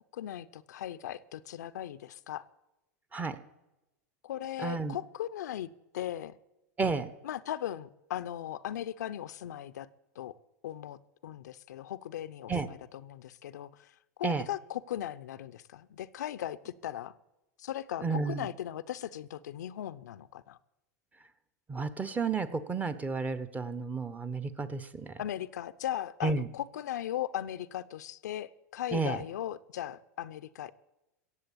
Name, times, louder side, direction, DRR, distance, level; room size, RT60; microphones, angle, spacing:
voice 1, 0.1-2.5 4.2-6.4 7.2-9.9 10.2-10.3 10.6-13.9 14.2-17.1 17.6-20.6 25.2-30.7, left 12 dB, 85° left, 14 dB, 0.6 m, -38 dB
voice 2, 4.6-5.0 6.8-7.1 12.5-12.7 14.2-14.4 18.0-18.5 21.7-25.2 26.2-26.5 28.9-29.2, right 4 dB, 15° right, 13 dB, 1.1 m, -32 dB
16.0 x 7.7 x 8.5 m, 0.98 s
hypercardioid pair, 115°, 9 cm